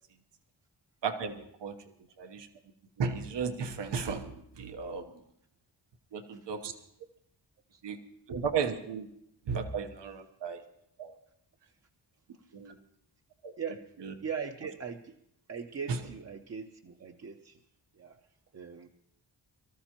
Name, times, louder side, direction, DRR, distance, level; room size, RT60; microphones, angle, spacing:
voice 1, 1.0-1.8 2.2-2.5 3.0-5.0 6.1-6.7 7.8-8.0 8.3-9.1 9.5-10.6 11.0-11.2 12.5-12.7 13.4-13.5 14.0-14.1 15.9-16.0, right 5 dB, 85° right, 6 dB, 1.1 m, -34 dB
voice 2, 14.2-15.1 15.5-17.6 18.0-18.2 18.5-18.9, right 6 dB, 40° right, 3 dB, 0.6 m, -40 dB
24.0 x 14.0 x 3.0 m, 0.74 s
wide cardioid pair, 160°, 41 cm